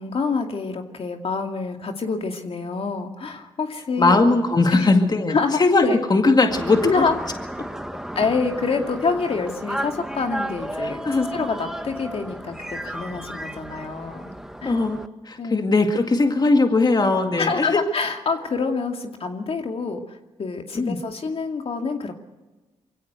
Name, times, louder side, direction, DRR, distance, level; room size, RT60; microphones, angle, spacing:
voice 1, 0.0-4.2 4.7-4.9 5.3-6.0 6.8-7.2 8.2-12.5 12.8-14.3 14.6-14.8 15.4-15.7 17.4-22.1, left 4 dB, 55° left, 4 dB, 2.4 m, -26 dB
voice 2, 4.0-5.8 6.1-7.0 10.8-11.3 14.6-15.0 15.3-17.7 20.7-21.0, left 3 dB, 35° left, 5 dB, 2.0 m, -19 dB
sound 1, 6.5-15.1, equal, 5° right, 1.4 m, -33 dB
23.5 x 16.5 x 8.1 m, 1.1 s
cardioid pair, 60°, 11 cm